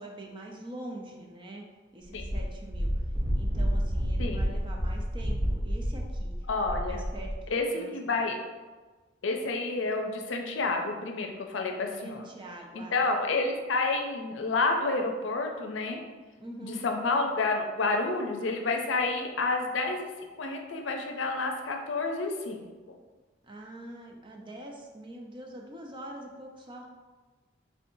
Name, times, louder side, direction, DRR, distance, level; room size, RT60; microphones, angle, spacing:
voice 1, 0.0-1.7 1.9-3.0 3.3-6.3 6.8-7.3 7.7-8.2 12.0-13.0 16.4-16.9 23.4-26.9, right 1 dB, 25° right, 0 dB, 0.5 m, -44 dB
Wind, 2.1-7.4, equal, 60° right, 1.0 m, -30 dB
voice 2, 6.5-7.0 7.5-8.4 9.2-12.3 12.9-16.0 16.6-20.1 20.4-23.0, left 3 dB, 80° left, 3 dB, 0.5 m, -29 dB
4.3 x 3.3 x 2.6 m, 1.3 s
head